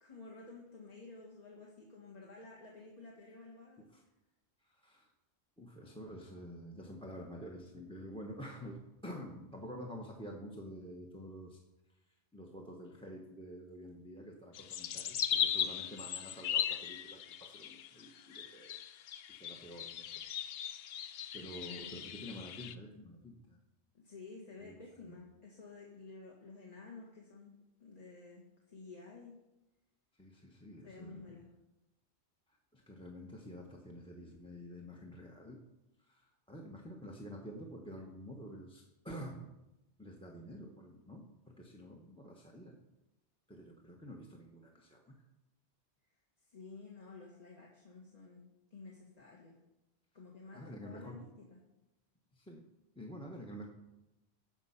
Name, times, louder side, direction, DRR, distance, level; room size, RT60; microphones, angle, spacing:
voice 1, 0.0-3.9 21.5-22.0 23.9-27.5 27.8-29.3 30.8-31.5 46.4-48.4 48.7-49.6 50.1-51.6, left 3 dB, 40° left, -2 dB, 1.6 m, -52 dB
voice 2, 4.6-5.1 5.6-11.6 12.3-20.1 21.3-23.6 24.6-24.8 25.0-25.1 30.2-31.3 32.5-35.6 36.0-39.5 40.0-42.8 43.5-45.2 50.5-51.2 52.3-52.6 53.0-53.7, equal, 5° left, 1 dB, 0.9 m, -49 dB
sound 1, 14.5-22.7, left 9 dB, 70° left, 0.8 m, -38 dB
14.5 x 5.4 x 5.7 m, 0.97 s
omnidirectional pair, 1.1 m